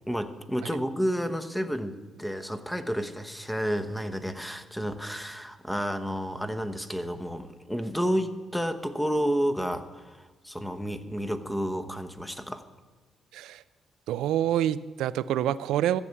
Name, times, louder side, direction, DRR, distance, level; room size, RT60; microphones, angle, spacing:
voice 1, 0.1-12.6, equal, 5° left, 8 dB, 1.0 m, -31 dB
voice 2, 13.3-13.6 14.1-16.0, right 11 dB, 85° right, 16 dB, 0.4 m, -27 dB
14.0 x 7.0 x 8.2 m, 1.3 s
cardioid pair, 90°, 0 cm